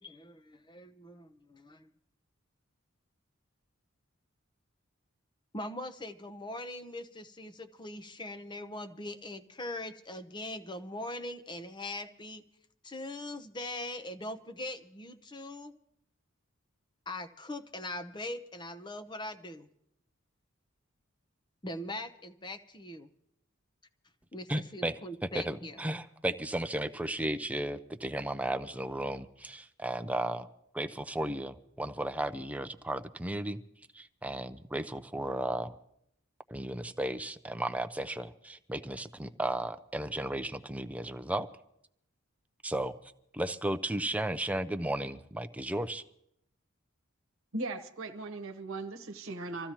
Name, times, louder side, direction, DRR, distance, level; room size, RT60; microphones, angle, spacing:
voice 1, 0.0-1.9 5.5-12.4 12.8-15.7 17.1-19.7 21.6-23.1 24.3-25.8, left 1 dB, 20° left, 0.8 m, -41 dB
voice 2, 24.5-24.9 25.3-30.5 30.7-33.6 33.9-35.8 36.5-41.5 42.6-42.9 43.3-46.0, right 1 dB, 5° right, 0.5 m, -34 dB
voice 3, 47.5-49.7, right 2 dB, 80° right, 1.1 m, -38 dB
26.0 x 14.5 x 3.0 m
head